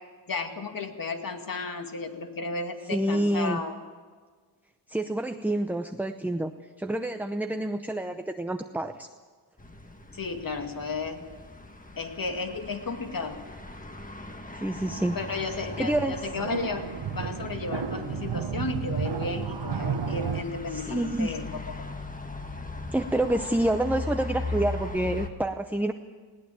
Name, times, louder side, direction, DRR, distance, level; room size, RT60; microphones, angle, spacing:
voice 1, 0.3-3.7 10.1-11.2 12.0-13.4 15.1-16.8 17.1-21.5, left 4 dB, 55° left, 5 dB, 2.4 m, -33 dB
voice 2, 2.9-3.6 4.9-6.5 6.8-9.1 14.5-15.2 15.5-16.1 20.7-21.3 22.9-25.9, right 1 dB, 5° right, 7 dB, 0.7 m, -28 dB
sound 1, 9.6-25.3, left 2 dB, 20° left, 1.6 m, -39 dB
sound 2, 14.8-20.4, right 7 dB, 80° right, 1.4 m, -33 dB
20.0 x 17.5 x 8.7 m, 1.5 s
wide cardioid pair, 130°, 41 cm